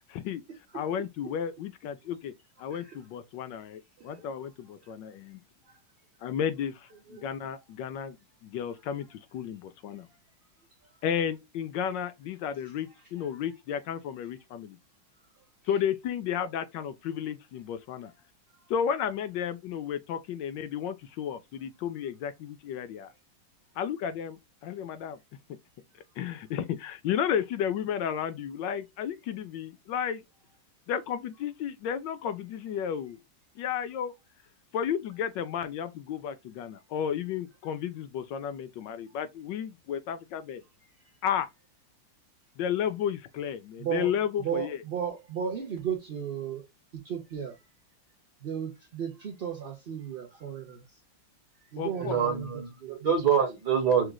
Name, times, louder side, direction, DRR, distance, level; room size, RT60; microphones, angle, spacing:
voice 1, 0.1-0.4 0.7-2.3 2.6-5.4 6.2-8.2 8.4-10.1 11.0-14.8 15.7-18.1 18.7-23.1 23.8-25.2 26.2-30.2 30.9-33.2 33.6-34.1 34.7-40.6 41.2-41.5 42.6-44.8 51.8-52.1, left 8 dB, 75° left, 1.2 m, -33 dB
voice 2, 43.8-44.1 44.4-46.6 47.0-47.6 48.4-50.8 51.7-52.5 52.8-53.0, right 8 dB, 80° right, 0.5 m, -34 dB
voice 3, 51.9-54.1, right 7 dB, 60° right, 1.7 m, -26 dB
6.0 x 2.4 x 2.2 m
omnidirectional pair, 2.2 m